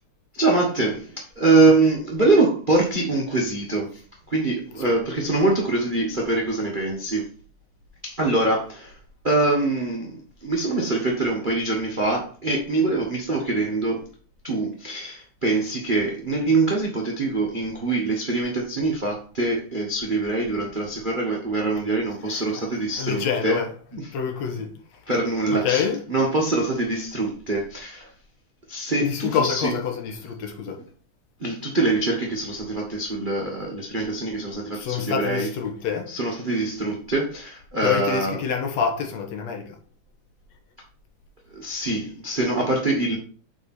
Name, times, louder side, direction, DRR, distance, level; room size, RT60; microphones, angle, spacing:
voice 1, 0.3-3.9 4.3-7.2 8.0-8.9 9.2-14.0 14.4-23.6 25.1-25.8 26.1-28.1 28.7-29.7 31.4-35.5 36.1-38.3 41.5-43.2, right 2 dB, 90° right, 0.4 m, -24 dB
voice 2, 1.6-1.9 4.7-4.8 22.2-23.8 24.1-24.7 25.4-26.0 29.0-30.8 34.7-36.2 37.8-39.8, left 7 dB, 65° left, 2.1 m, -27 dB
8.1 x 4.2 x 4.3 m
omnidirectional pair, 3.4 m